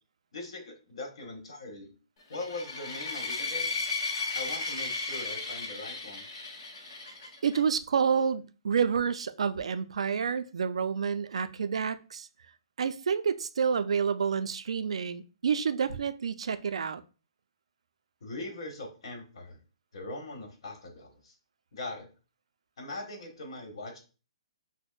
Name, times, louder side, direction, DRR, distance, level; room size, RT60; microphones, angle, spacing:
voice 1, 0.3-1.9 2.3-3.7 4.3-6.3 18.2-19.6 19.9-21.3 21.7-22.1 22.8-24.0, left 2 dB, 65° left, 1.3 m, -41 dB
sound 1, 2.3-7.6, left 3 dB, 35° left, 1.1 m, -35 dB
voice 2, 7.4-12.3 12.8-17.0, right 6 dB, 80° right, 0.3 m, -29 dB
6.0 x 2.0 x 2.3 m
hypercardioid pair, 170°, 3 cm